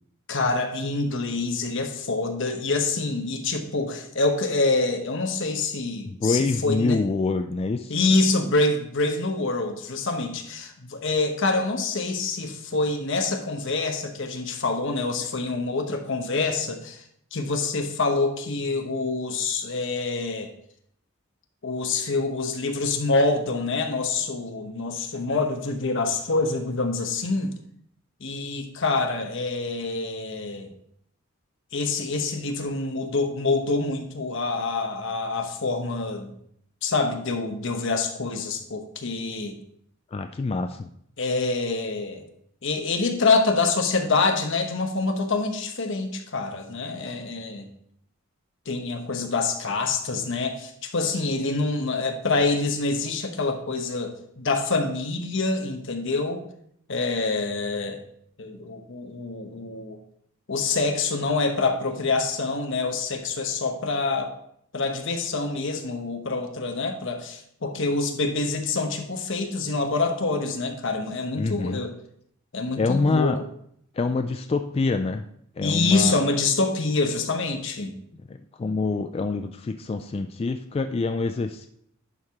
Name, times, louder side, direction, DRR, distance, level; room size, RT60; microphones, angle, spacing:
voice 1, 0.3-7.0 7.9-17.0 17.3-20.5 21.6-27.5 28.2-30.7 31.7-36.3 36.8-39.5 41.2-42.2 42.6-47.7 48.7-56.4 56.9-58.0 58.4-60.0 60.5-64.3 64.7-71.9 72.5-73.3 75.6-77.9, left 3 dB, 60° left, 5 dB, 1.0 m, -26 dB
voice 2, 6.1-8.0 40.1-40.9 71.4-71.8 72.8-73.4 73.9-75.3 75.6-76.2 78.3-81.7, left 3 dB, 30° left, 7 dB, 0.3 m, -26 dB
11.0 x 4.7 x 3.5 m, 0.70 s
head